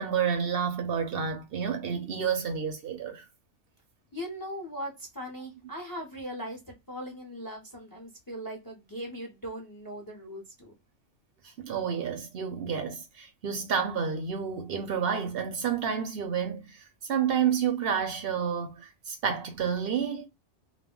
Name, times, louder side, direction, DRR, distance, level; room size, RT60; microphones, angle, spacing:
voice 1, 0.0-3.3 11.6-20.3, right 7 dB, 60° right, 0.7 m, -30 dB
voice 2, 4.1-10.7, equal, 30° left, 0.4 m, -39 dB
2.3 x 2.1 x 3.6 m
omnidirectional pair, 1.2 m